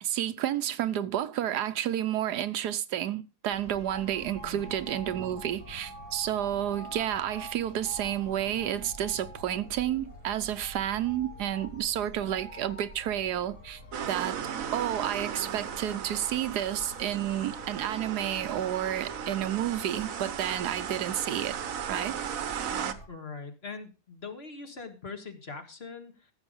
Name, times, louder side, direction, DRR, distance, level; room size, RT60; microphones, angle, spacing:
voice 1, 0.0-13.8 14.1-14.4 14.7-21.6 21.9-22.2, right 11 dB, 80° right, 1.3 m, -30 dB
sound 1, 3.5-23.1, equal, 85° left, 5.8 m, -47 dB
voice 2, 4.4-4.7 23.1-26.3, left 4 dB, 40° left, 1.8 m, -42 dB
sound 2, 13.9-22.9, right 8 dB, 60° right, 1.2 m, -36 dB
14.5 x 7.0 x 5.3 m
omnidirectional pair, 1.7 m